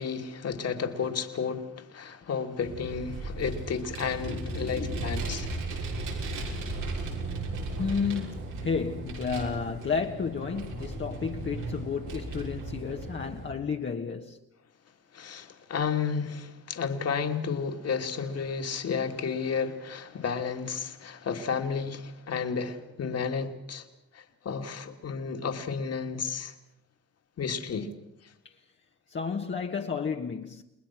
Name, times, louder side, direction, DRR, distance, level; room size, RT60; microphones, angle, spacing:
voice 1, 0.0-5.5 15.1-23.8 24.4-26.5 27.4-27.9, left 6 dB, 55° left, 2.8 m, -32 dB
Vehicle, 2.6-13.5, right 2 dB, 85° right, 6.2 m, -36 dB
voice 2, 4.2-5.1 5.9-6.1 7.8-14.4 28.4-28.5 29.1-30.6, left 5 dB, 40° left, 1.6 m, -32 dB
30.0 x 20.5 x 6.2 m
cardioid pair, 90°, 30 cm